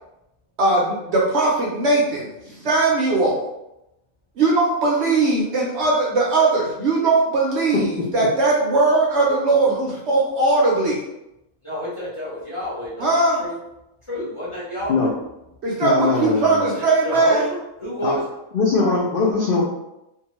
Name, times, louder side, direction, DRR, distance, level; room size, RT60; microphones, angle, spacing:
voice 1, 0.6-3.4 4.4-11.0 13.0-13.4 15.6-17.5, right 3 dB, 65° right, -4 dB, 0.7 m, -19 dB
voice 2, 11.6-13.1 13.4-13.5 14.1-15.1 16.6-18.3, equal, 25° left, -8 dB, 0.7 m, -29 dB
voice 3, 15.8-16.6 18.0-18.1 18.5-19.6, left 4 dB, 65° left, -4 dB, 0.5 m, -20 dB
2.7 x 2.3 x 2.9 m, 0.88 s
omnidirectional pair, 1.5 m